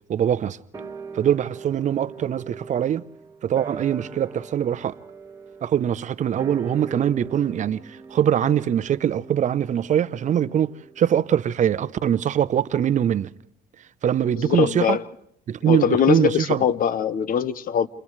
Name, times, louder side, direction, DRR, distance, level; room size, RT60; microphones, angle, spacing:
voice 1, 0.1-0.6 1.1-3.0 3.4-4.9 5.6-13.3 14.0-15.0 15.5-16.6, right 9 dB, 45° right, 0.8 m, -22 dB
sound 1, 0.7-11.3 11.6-11.7, right 5 dB, 20° right, 1.4 m, -41 dB
voice 2, 14.4-15.0 15.7-17.9, left 8 dB, 55° left, 1.0 m, -22 dB
29.5 x 28.5 x 3.2 m
cardioid pair, 110°, 17 cm